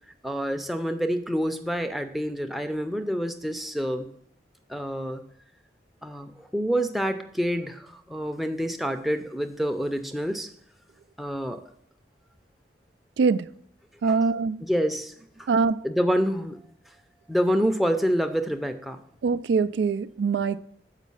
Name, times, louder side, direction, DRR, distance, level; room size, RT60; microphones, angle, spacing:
voice 1, 0.2-4.1 4.7-5.2 6.0-10.5 11.2-11.6 14.1-14.2 14.6-15.5 15.8-16.6 17.3-19.0, equal, ahead, 0.5 m, -27 dB
voice 2, 13.2-13.5 14.0-14.6 15.5-15.9 19.2-20.6, right 5 dB, 85° right, 0.3 m, -23 dB
7.3 x 5.0 x 5.4 m
head